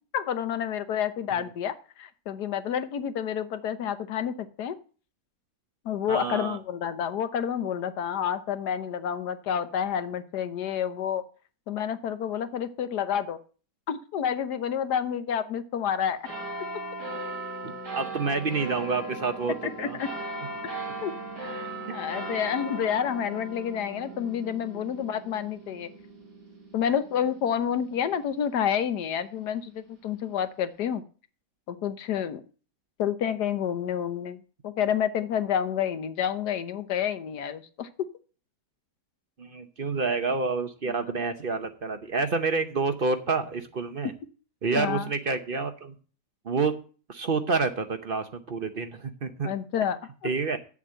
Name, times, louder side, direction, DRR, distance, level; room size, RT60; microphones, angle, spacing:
voice 1, 0.1-4.8 5.8-11.2 11.7-13.4 13.9-16.3 19.6-20.1 20.6-21.1 21.4-25.9 26.7-31.0 31.7-32.4 33.0-37.9 44.7-45.1 49.4-50.3, left 8 dB, 75° left, 11 dB, 1.4 m, -29 dB
voice 2, 6.1-6.6 17.6-20.0 21.9-22.0 39.4-44.1 44.6-45.9 46.4-46.7 47.1-49.5 50.2-50.6, right 4 dB, 45° right, 8 dB, 0.8 m, -28 dB
sound 1, 16.2-29.1 29.8-29.9, right 2 dB, 90° right, 3.7 m, -38 dB
8.4 x 7.3 x 7.6 m, 0.39 s
omnidirectional pair, 1.8 m